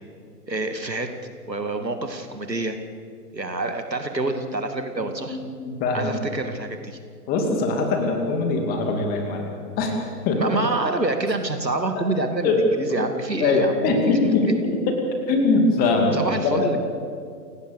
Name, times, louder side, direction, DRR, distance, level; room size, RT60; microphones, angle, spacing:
voice 1, 0.5-1.1 1.5-2.8 3.3-5.4 5.9-7.0 10.4-13.8 14.2-14.5 16.1-16.8, right 2 dB, 85° right, 6 dB, 2.6 m, -27 dB
voice 2, 5.3-6.2 7.3-9.5 9.8-10.0 10.2-10.4 12.4-13.1 13.4-15.0 15.3-16.2 16.4-16.7, left 3 dB, 20° left, 3 dB, 2.6 m, -22 dB
28.5 x 18.0 x 6.8 m, 2.2 s
figure-of-eight pair, 130°, 49 cm